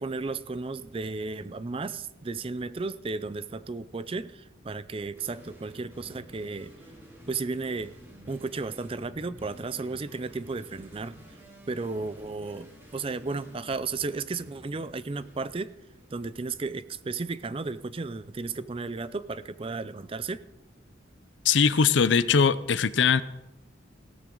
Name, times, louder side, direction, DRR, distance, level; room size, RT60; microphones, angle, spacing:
voice 1, 0.0-6.7 7.3-8.0 8.3-11.2 11.7-15.7 16.1-20.5, right 3 dB, 30° right, 15 dB, 0.4 m, -34 dB
sound 1, 5.1-16.7, equal, 15° right, 3.6 m, -52 dB
voice 2, 21.4-23.2, left 6 dB, 70° left, 15 dB, 0.6 m, -21 dB
17.0 x 13.0 x 3.9 m, 0.92 s
head